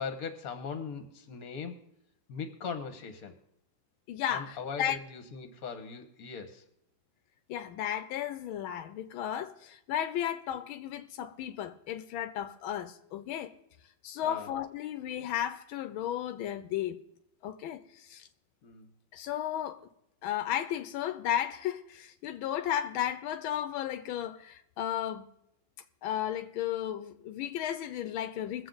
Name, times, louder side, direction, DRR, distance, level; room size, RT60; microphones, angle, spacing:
voice 1, 0.0-1.8 2.3-3.4 4.3-6.6 14.2-14.5 18.6-18.9, left 5 dB, 50° left, 1.6 m, -39 dB
voice 2, 4.1-5.0 7.5-13.5 14.0-17.0 17.4-18.3 19.1-19.8 20.2-25.3 26.0-28.7, left 11 dB, 85° left, 1.5 m, -34 dB
22.0 x 7.6 x 3.9 m
omnidirectional pair, 2.2 m